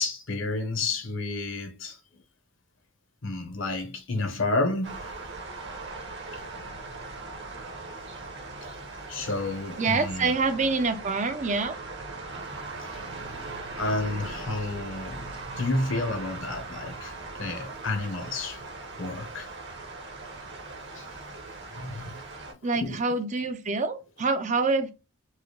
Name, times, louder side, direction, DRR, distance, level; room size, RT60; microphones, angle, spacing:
voice 1, 0.0-2.0 3.2-5.0 9.1-10.3 12.8-13.0 13.8-15.3 15.6-17.1 17.4-18.6 19.0-19.5 20.9-21.1 21.7-22.2 22.5-23.0, left 2 dB, 60° left, 0.9 m, -30 dB
sound 1, 4.8-22.5, right 3 dB, 55° right, 1.1 m, -40 dB
voice 2, 9.8-11.7 22.6-24.9, right 4 dB, 35° right, 0.5 m, -26 dB
4.7 x 2.2 x 3.0 m
head